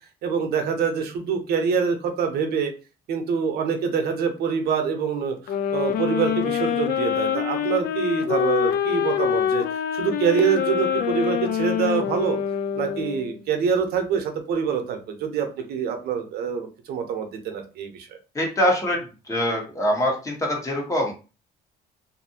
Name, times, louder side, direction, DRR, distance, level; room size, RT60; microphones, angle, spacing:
voice 1, 0.2-2.7 3.1-12.4 12.7-18.1, right 6 dB, 70° right, 5 dB, 0.7 m, -25 dB
sound 1, 5.5-13.4, left 9 dB, 65° left, 0.4 m, -25 dB
voice 2, 18.3-21.1, equal, 20° left, 0 dB, 1.0 m, -24 dB
2.7 x 2.5 x 2.7 m, 0.33 s
cardioid pair, 110°, 17 cm